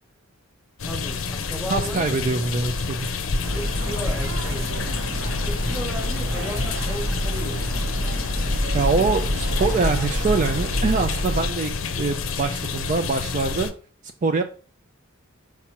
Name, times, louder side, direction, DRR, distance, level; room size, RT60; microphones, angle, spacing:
sound 1, 0.8-13.7, left 4 dB, 65° left, 0.6 m, -29 dB
voice 1, 0.8-2.7 3.5-4.9 5.4-8.1, equal, ahead, 1.1 m, -36 dB
voice 2, 1.7-3.0 8.7-11.7 12.0-13.7 14.2-14.4, right 4 dB, 35° right, 0.4 m, -24 dB
sound 2, 3.4-11.5, equal, 60° right, 0.9 m, -27 dB
5.9 x 5.8 x 3.0 m
head